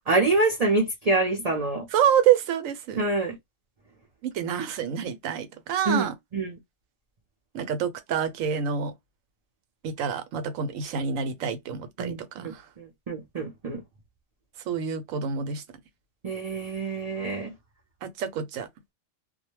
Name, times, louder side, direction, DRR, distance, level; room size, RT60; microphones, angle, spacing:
voice 1, 0.1-1.9 3.0-3.4 5.9-6.6 12.0-13.8 16.2-17.5, right 2 dB, 40° right, 0.6 m, -26 dB
voice 2, 1.9-3.0 4.2-6.1 7.5-8.9 9.8-12.7 14.7-15.6 18.0-18.7, right 8 dB, 85° right, 1.0 m, -27 dB
2.4 x 2.1 x 3.0 m
omnidirectional pair, 1.4 m